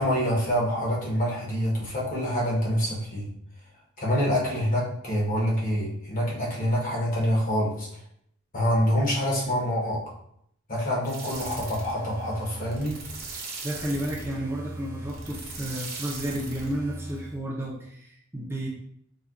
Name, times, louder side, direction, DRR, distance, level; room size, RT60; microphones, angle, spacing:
voice 1, 0.0-3.3 4.0-7.9 8.5-10.0 10.7-13.0, equal, 40° left, -4 dB, 0.9 m, -26 dB
sound 1, 11.0-17.4, right 3 dB, 50° right, 0.7 m, -38 dB
voice 2, 13.6-18.7, right 1 dB, 10° right, -4 dB, 0.4 m, -32 dB
4.2 x 2.1 x 2.4 m, 0.71 s
head